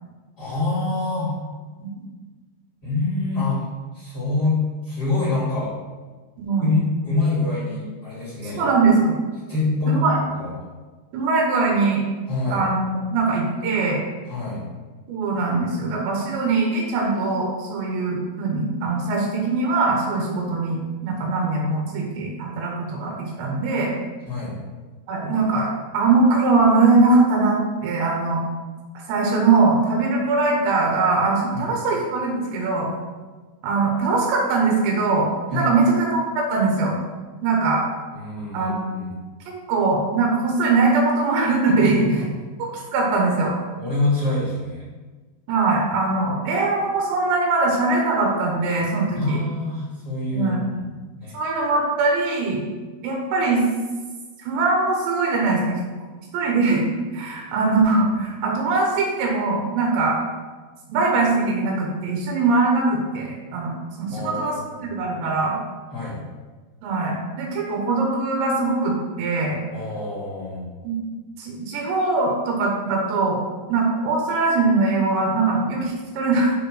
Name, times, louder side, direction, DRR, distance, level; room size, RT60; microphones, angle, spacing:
voice 1, 0.4-1.3 2.8-3.7 3.9-4.6 4.8-5.7 6.6-8.6 9.5-10.1 10.4-10.5 12.3-12.7 14.3-14.6 24.3-24.6 31.5-31.7 35.5-35.7 38.1-39.1 41.8-42.1 43.8-44.9 49.1-50.9 51.2-51.4 64.1-64.9 65.9-66.2 69.7-70.7, left 2 dB, 30° left, -8 dB, 2.4 m, -25 dB
voice 2, 6.4-6.8 8.4-9.2 9.9-10.2 11.1-12.0 12.5-14.0 15.1-23.9 25.1-25.7 25.9-28.4 29.1-32.9 33.6-37.0 37.4-37.9 38.5-38.8 39.5-42.0 42.9-43.5 45.5-49.4 50.3-50.6 51.3-52.6 53.0-53.7 54.4-55.8 56.3-56.9 57.1-60.2 60.9-65.6 66.8-69.6 70.8-71.0 71.4-73.4 73.7-76.5, right 3 dB, 90° right, -1 dB, 3.5 m, -21 dB
6.9 x 5.4 x 6.0 m, 1.3 s
omnidirectional pair, 4.9 m